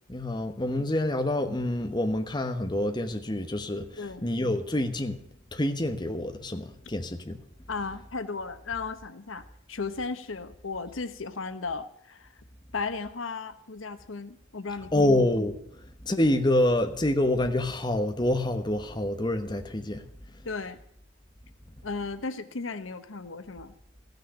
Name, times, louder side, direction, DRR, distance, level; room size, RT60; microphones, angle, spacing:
voice 1, 0.1-5.2 5.5-7.4 14.9-15.6 16.0-20.0, left 1 dB, 20° left, 6 dB, 1.1 m, -27 dB
voice 2, 4.0-4.3 7.7-12.4 12.7-15.1 20.4-20.8 21.8-23.7, left 4 dB, 90° left, 11 dB, 1.1 m, -35 dB
15.0 x 6.6 x 9.9 m, 0.68 s
head